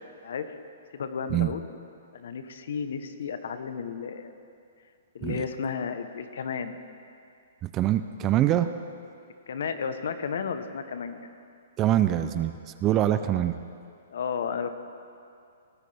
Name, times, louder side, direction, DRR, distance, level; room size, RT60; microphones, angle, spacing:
voice 1, 0.9-1.6 2.1-4.4 5.1-6.8 9.5-11.3 14.1-14.8, left 6 dB, 65° left, 9 dB, 0.9 m, -33 dB
voice 2, 7.6-8.7 11.8-12.5 12.8-13.6, right 12 dB, 20° right, 10 dB, 0.3 m, -24 dB
19.0 x 12.5 x 3.4 m, 2.4 s
hypercardioid pair, 170°, 0 cm